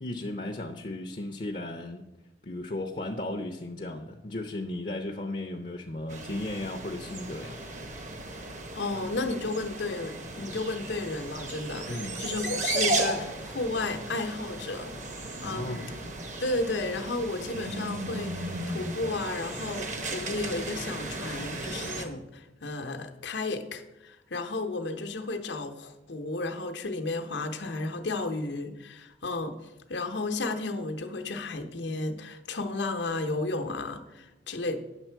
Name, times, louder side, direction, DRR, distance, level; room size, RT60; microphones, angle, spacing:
voice 1, 0.0-2.0 2.4-7.6 11.9-12.2 15.4-15.8, left 1 dB, 40° left, 4 dB, 0.6 m, -35 dB
sound 1, 6.1-22.0, right 2 dB, 40° right, 0.9 m, -35 dB
voice 2, 8.7-15.0 15.4-15.8 16.4-34.8, left 2 dB, 80° left, 5 dB, 0.8 m, -33 dB
9.0 x 6.6 x 4.5 m, 0.99 s
head